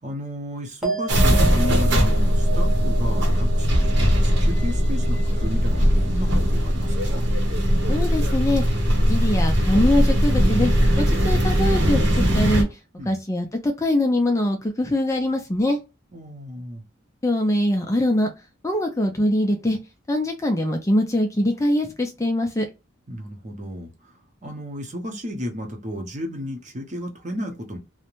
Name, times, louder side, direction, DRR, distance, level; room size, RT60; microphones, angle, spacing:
voice 1, 0.0-7.3 13.0-13.2 16.1-16.8 23.1-27.8, equal, 40° right, 0.7 m, -33 dB
sound 1, 0.8-7.5 7.8-8.4, right 5 dB, ahead, 0.8 m, -33 dB
sound 2, 1.1-12.6, equal, 65° right, 0.8 m, -19 dB
voice 2, 7.9-8.6 9.1-10.7 11.0-12.0 12.3-12.8 13.1-15.8 17.2-18.3 18.6-19.8 20.1-22.7, left 1 dB, 15° left, 0.4 m, -22 dB
2.5 x 2.1 x 2.9 m
head